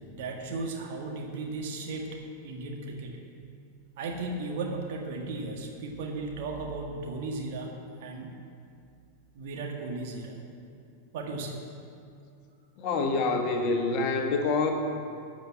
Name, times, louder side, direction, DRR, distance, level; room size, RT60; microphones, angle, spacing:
voice 1, 0.1-2.2 2.4-3.2 4.0-7.7 8.0-8.3 9.3-10.4 11.1-11.6, right 3 dB, 50° right, 0 dB, 1.9 m, -35 dB
voice 2, 12.8-14.7, left 3 dB, 40° left, 3 dB, 1.4 m, -26 dB
14.0 x 5.2 x 7.8 m, 2.5 s
figure-of-eight pair, 90°, 0 cm